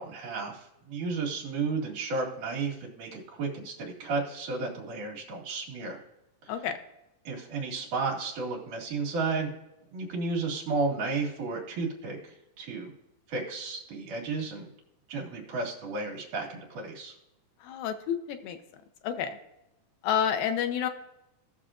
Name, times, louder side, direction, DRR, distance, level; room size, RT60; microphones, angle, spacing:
voice 1, 0.0-6.0 6.4-6.5 7.3-9.5 9.9-12.9 13.3-14.7 15.1-17.1, right 3 dB, 60° right, -2 dB, 3.5 m, -33 dB
voice 2, 17.6-18.6 19.0-19.4 20.0-20.9, left 8 dB, 75° left, 7 dB, 2.5 m, -29 dB
18.5 x 6.6 x 2.5 m, 0.90 s
omnidirectional pair, 4.2 m